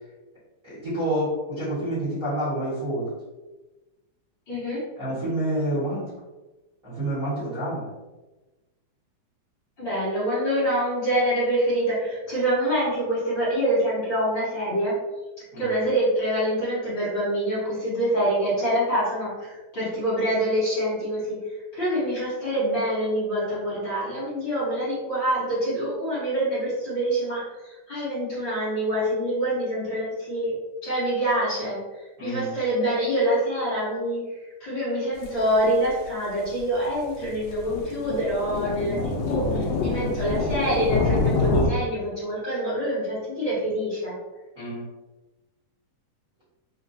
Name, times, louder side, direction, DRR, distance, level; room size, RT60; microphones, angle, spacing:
voice 1, 0.6-3.1 5.0-6.1 6.8-7.9 15.5-15.8 32.2-32.5 38.7-39.1 39.9-40.1 44.5-44.9, right 1 dB, 40° right, -11 dB, 1.2 m, -28 dB
voice 2, 4.5-4.8 9.8-15.0 15.6-30.5 30.8-34.2 34.6-44.2, right 1 dB, 50° left, -11 dB, 1.6 m, -26 dB
sound 1, 35.2-35.3 35.8-35.9 36.5-36.6 37.2-41.7, left 3 dB, 80° left, 1.8 m, -26 dB
4.5 x 2.3 x 2.6 m, 1.1 s
omnidirectional pair, 3.3 m